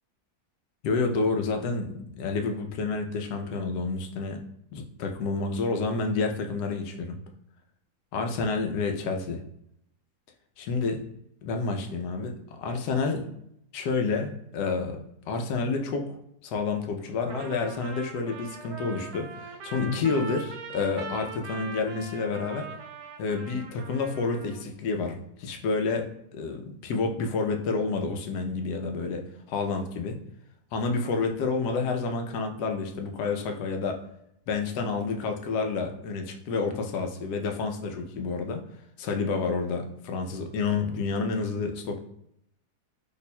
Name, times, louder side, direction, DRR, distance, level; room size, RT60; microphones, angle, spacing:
voice 1, 0.8-4.4 4.7-7.2 8.1-9.4 10.6-11.0 11.4-13.3 13.7-22.7 23.2-26.1 26.3-30.2 30.7-34.0 34.5-38.6 39.0-42.0, left 4 dB, 85° left, 4 dB, 1.2 m, -29 dB
Trumpet, 17.3-24.6, right 4 dB, 80° right, 1.1 m, -41 dB
3.1 x 2.1 x 4.1 m, 0.76 s
omnidirectional pair, 1.7 m